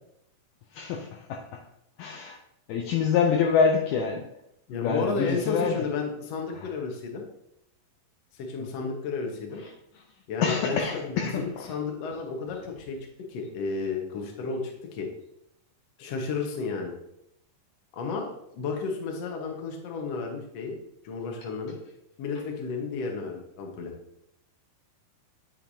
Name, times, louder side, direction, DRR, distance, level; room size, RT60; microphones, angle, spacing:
voice 1, 0.7-1.7 2.0-2.4 2.7-4.3 4.7-5.9 6.5-6.7 8.6-8.9 9.6-9.7 10.4-11.8, left 6 dB, 85° left, 2 dB, 1.9 m, -27 dB
voice 2, 4.7-7.2 8.4-9.6 10.3-13.0 13.3-15.1 16.0-16.9 17.9-20.8 21.0-21.8 22.2-23.9, left 4 dB, 65° left, 1 dB, 1.7 m, -32 dB
9.2 x 6.6 x 2.7 m, 0.80 s
omnidirectional pair, 4.5 m